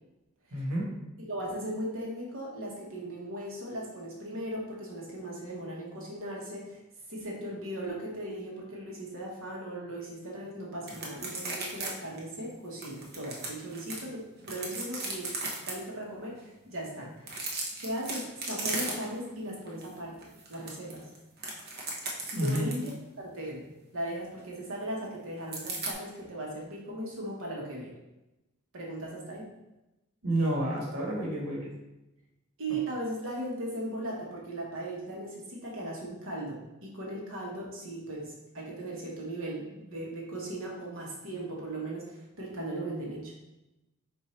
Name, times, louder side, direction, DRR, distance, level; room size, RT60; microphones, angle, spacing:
voice 1, 0.5-0.9 22.4-22.7 30.2-31.7, right 1 dB, 85° right, -3 dB, 1.4 m, -29 dB
voice 2, 1.3-6.8 7.1-15.3 15.7-17.4 17.8-21.1 22.3-22.9 23.2-23.7 23.9-27.9 28.7-29.5 32.6-43.5, right 1 dB, 65° right, -3 dB, 1.3 m, -38 dB
sound 1, 10.9-11.9 12.2-12.3 12.8-14.0 14.4-15.7 17.2-19.3 19.7-19.9 20.2-23.0 25.5-25.9, right 3 dB, 45° right, 0.9 m, -36 dB
4.5 x 2.7 x 4.3 m, 0.97 s
head